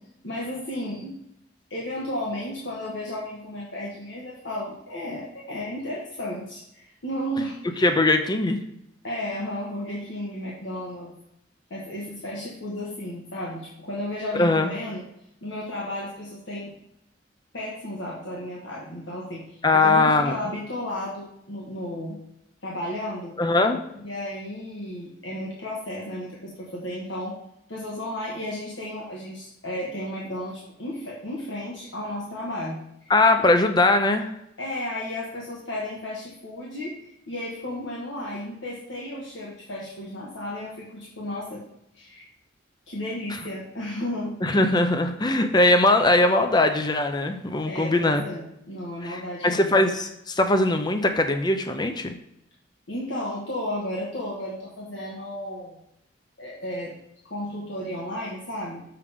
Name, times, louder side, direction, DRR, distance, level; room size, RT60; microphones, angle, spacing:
voice 1, 0.2-1.2 1.7-7.9 9.0-11.1 11.7-15.0 15.4-16.7 17.5-22.2 22.6-23.4 23.9-27.4 27.7-33.1 33.4-33.5 34.6-41.6 41.9-42.3 42.9-44.4 47.7-49.7 52.9-55.8 56.4-56.9 57.3-58.8, left 1 dB, 80° left, -5 dB, 1.5 m, -33 dB
voice 2, 7.8-8.6 14.3-14.7 19.6-20.4 23.4-23.8 33.1-34.3 44.4-48.2 49.0-52.1, left 2 dB, 20° left, 7 dB, 0.6 m, -21 dB
7.1 x 6.7 x 3.5 m, 0.79 s
head